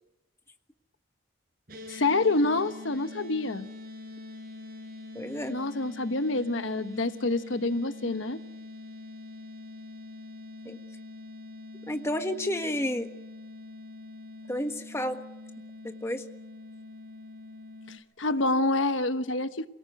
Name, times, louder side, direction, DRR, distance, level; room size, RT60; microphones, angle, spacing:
sound 1, 1.7-18.0, left 2 dB, 50° right, 6.0 m, -44 dB
voice 1, 1.9-3.7 5.5-8.4 17.9-19.7, left 2 dB, 90° left, 11 dB, 1.2 m, -27 dB
voice 2, 5.1-5.5 10.6-10.8 11.9-13.1 14.5-15.2 15.8-16.2, left 1 dB, 15° left, 7 dB, 1.4 m, -31 dB
28.0 x 18.0 x 9.4 m, 0.96 s
head